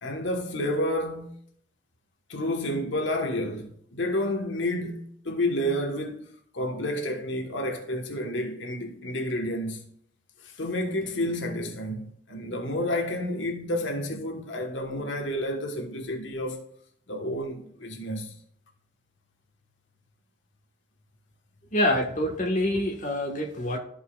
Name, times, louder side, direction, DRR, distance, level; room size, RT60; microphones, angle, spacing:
voice 1, 0.0-1.3 2.3-6.3 6.5-9.8 10.4-16.7 17.1-18.4, left 1 dB, 80° left, 1.3 m, -30 dB
voice 2, 21.7-23.8, left 1 dB, 40° left, 1.3 m, -26 dB
13.5 x 5.4 x 2.3 m
head